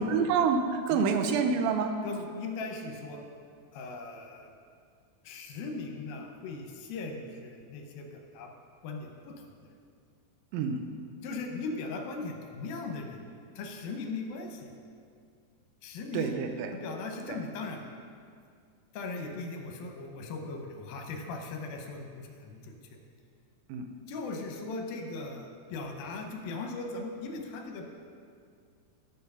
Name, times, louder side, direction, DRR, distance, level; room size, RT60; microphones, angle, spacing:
voice 1, 0.0-2.0 10.5-10.8 16.1-16.7 17.3-17.4 23.7-23.9, right 5 dB, 80° right, 6 dB, 2.2 m, -27 dB
voice 2, 2.0-3.2 3.7-4.5 5.2-8.5 8.8-9.8 11.2-13.3 13.6-14.7 15.8-16.4 16.7-17.9 18.9-22.8 24.1-27.9, left 3 dB, 75° left, 3 dB, 2.5 m, -39 dB
11.5 x 4.6 x 5.4 m, 2.2 s
omnidirectional pair, 4.5 m